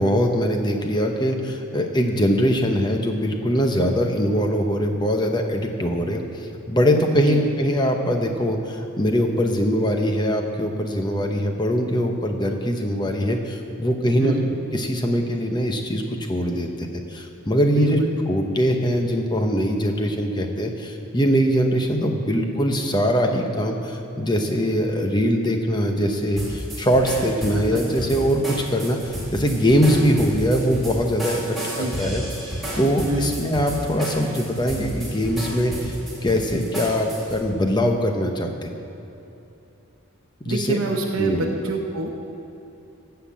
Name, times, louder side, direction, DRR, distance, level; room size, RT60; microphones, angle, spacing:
voice 1, 0.0-14.4 14.7-16.0 16.3-18.0 18.3-32.2 32.7-35.9 36.2-38.7 40.4-40.8 41.2-41.5, equal, 20° left, 4 dB, 0.9 m, -22 dB
voice 2, 14.2-14.5 17.7-18.1 27.7-27.8 31.8-31.9 33.1-33.3 40.4-42.1, right 2 dB, 80° right, 1 dB, 1.0 m, -26 dB
sound 1, 26.4-37.4, equal, ahead, 2.8 m, -32 dB
15.5 x 5.8 x 7.4 m, 2.9 s
head